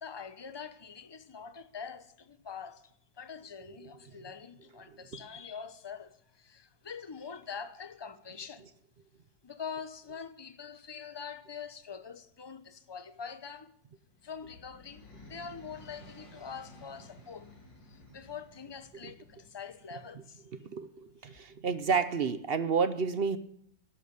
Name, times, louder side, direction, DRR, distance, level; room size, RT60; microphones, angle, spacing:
voice 1, 0.0-2.9 3.2-8.7 9.4-13.7 14.2-17.5 17.8-20.5 21.3-21.4, left 6 dB, 30° left, 0.4 m, -44 dB
sound 1, 13.9-20.0, left 2 dB, 80° left, 4.2 m, -54 dB
voice 2, 20.6-23.4, right 5 dB, 60° right, 0.6 m, -30 dB
12.0 x 11.5 x 8.2 m
omnidirectional pair, 2.0 m